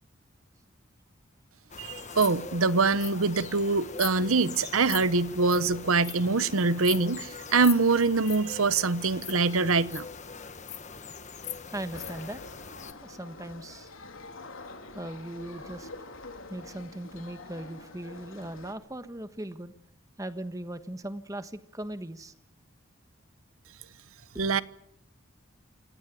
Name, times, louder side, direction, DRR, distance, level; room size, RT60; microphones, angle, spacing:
sound 1, 1.7-12.9, left 7 dB, 35° left, 1.4 m, -41 dB
voice 1, 1.8-10.1 24.4-24.6, right 4 dB, 85° right, 1.0 m, -24 dB
voice 2, 11.7-12.4 13.0-13.9 14.9-15.9 16.5-19.7 20.2-22.3 24.3-24.5, right 1 dB, 15° right, 1.3 m, -39 dB
sound 2, 11.9-18.7, left 2 dB, 75° left, 3.6 m, -46 dB
27.5 x 17.0 x 9.2 m
head